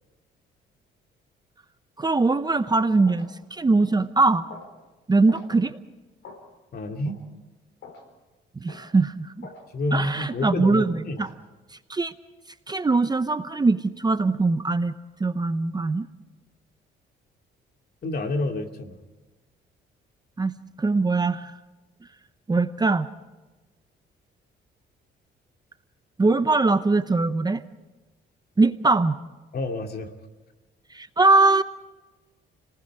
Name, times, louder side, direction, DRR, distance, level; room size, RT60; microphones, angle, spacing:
voice 1, 2.0-4.5 5.1-5.8 8.6-9.5 9.9-11.3 11.9-12.1 12.7-14.9 15.2-16.1 20.4-21.5 22.5-23.1 26.2-27.6 28.6-29.2 30.9-31.6, right 3 dB, 20° right, 11 dB, 0.8 m, -22 dB
sound 1, 2.3-2.5 3.0-3.3 3.8-4.0 4.5-4.7 5.3-5.5 6.2-6.4 7.0-7.2 7.8-8.1 8.7-8.9 9.4-9.7 10.3-10.5 11.2-11.4, left 4 dB, 70° left, 4.3 m, -45 dB
voice 2, 6.7-7.2 9.7-11.2 18.0-19.0 29.5-30.1, left 2 dB, 50° left, 4 dB, 2.5 m, -28 dB
29.5 x 19.5 x 4.8 m, 1.2 s
cardioid pair, 90°, 20 cm